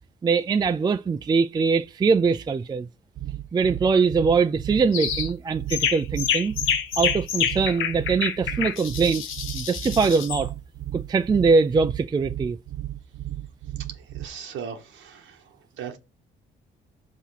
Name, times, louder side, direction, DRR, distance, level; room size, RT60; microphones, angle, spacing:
voice 1, 0.2-2.9 3.5-6.5 7.0-9.2 9.5-10.5 10.9-12.6, right 5 dB, 20° right, 0.3 m, -22 dB
sound 1, 3.2-14.3, right 13 dB, 55° right, 0.6 m, -34 dB
sound 2, 4.9-5.3 5.7-10.4, left 8 dB, 85° left, 1.0 m, -27 dB
voice 2, 14.1-15.4 15.8-16.0, right 7 dB, 85° right, 1.2 m, -37 dB
5.7 x 3.5 x 5.6 m
cardioid pair, 90°, 20 cm